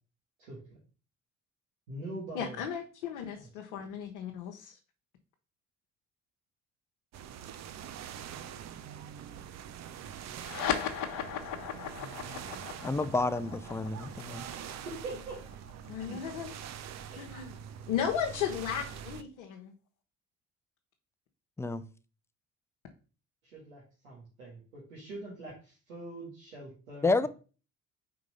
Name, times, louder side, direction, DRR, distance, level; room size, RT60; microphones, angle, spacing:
voice 1, 0.4-0.8 1.9-2.6 3.3-3.5 3.7-3.8 14.8-15.4 16.0-16.2 17.1-17.2 23.4-27.3, right 2 dB, 80° right, 1.6 m, -43 dB
voice 2, 2.3-4.8 15.9-16.5 17.2-17.6 17.9-19.7, left 8 dB, 75° left, 0.9 m, -35 dB
sound 1, 7.1-19.2, right 9 dB, 45° right, 0.6 m, -44 dB
sound 2, 10.4-17.2, left 9 dB, 55° left, 1.1 m, -38 dB
voice 3, 12.8-14.4 21.6-21.8 27.0-27.3, left 3 dB, 5° left, 0.5 m, -29 dB
4.8 x 3.8 x 5.3 m
figure-of-eight pair, 50°, 40 cm